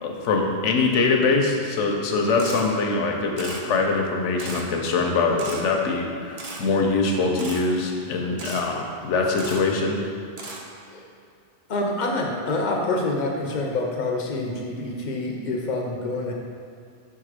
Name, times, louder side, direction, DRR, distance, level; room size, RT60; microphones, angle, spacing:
voice 1, 0.0-10.0, left 3 dB, 80° left, 2 dB, 1.0 m, -23 dB
Camera, 2.4-2.6 3.4-3.6 4.4-4.6 5.4-5.6 6.4-6.6 7.4-7.6 8.4-8.6 9.4-9.6 10.4-10.6, right 3 dB, 40° right, 0.6 m, -36 dB
voice 2, 11.7-16.3, left 2 dB, 45° left, 0 dB, 0.7 m, -27 dB
5.1 x 3.7 x 4.9 m, 2.4 s
omnidirectional pair, 1.2 m